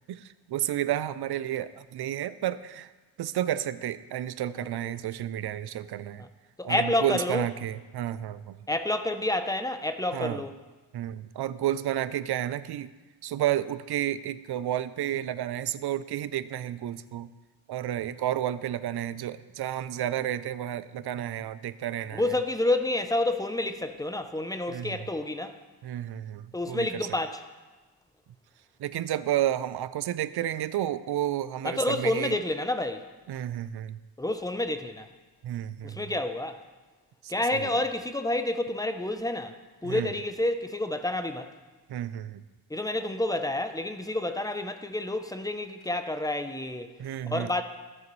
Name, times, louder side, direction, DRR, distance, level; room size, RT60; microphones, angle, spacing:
voice 1, 0.1-2.9 3.2-6.2 6.6-8.6 10.1-10.4 10.9-12.9 13.2-17.3 17.7-22.2 24.7-25.0 25.8-26.9 28.8-32.4 33.3-34.0 35.4-36.0 37.2-37.8 39.8-40.1 41.9-42.4 47.0-47.5, right 12 dB, 55° right, 15 dB, 0.5 m, -31 dB
voice 2, 4.6-5.0 6.2-6.3 6.6-7.5 8.7-10.5 22.1-25.6 26.5-27.4 31.6-33.0 34.2-35.1 35.8-36.6 37.3-39.5 39.8-41.5 42.7-47.0 47.2-47.6, left 1 dB, 10° left, 8 dB, 0.5 m, -29 dB
14.0 x 7.6 x 3.1 m, 1.2 s
cardioid pair, 105°, 46 cm